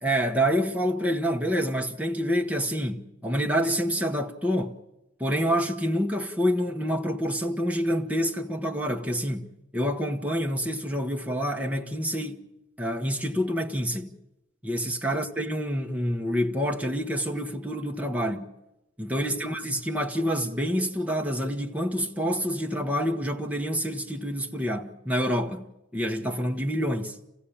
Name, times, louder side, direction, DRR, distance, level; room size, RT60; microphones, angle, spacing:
voice 1, 0.0-4.8 5.2-12.4 12.8-14.1 14.6-18.5 19.0-25.7 25.9-27.2, equal, 5° right, 1.1 m, -27 dB
28.0 x 15.5 x 8.6 m
head